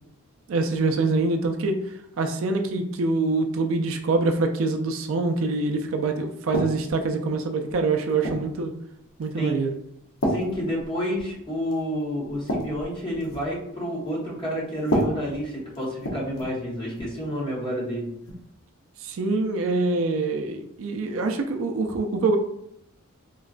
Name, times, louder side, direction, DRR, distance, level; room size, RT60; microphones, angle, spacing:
voice 1, 0.5-1.8 2.2-8.7 9.2-9.7 19.0-22.4, right 3 dB, 65° right, 4 dB, 0.4 m, -25 dB
sound 1, 6.5-7.1 7.7-8.6 9.2-9.5 10.2-11.4 11.7-11.9 12.2-13.6 14.8-16.6 16.9-17.2 18.3-18.4, equal, 70° left, 0.7 m, -30 dB
voice 2, 10.3-18.1, equal, 25° left, -5 dB, 0.9 m, -29 dB
3.8 x 2.2 x 2.4 m, 0.77 s
head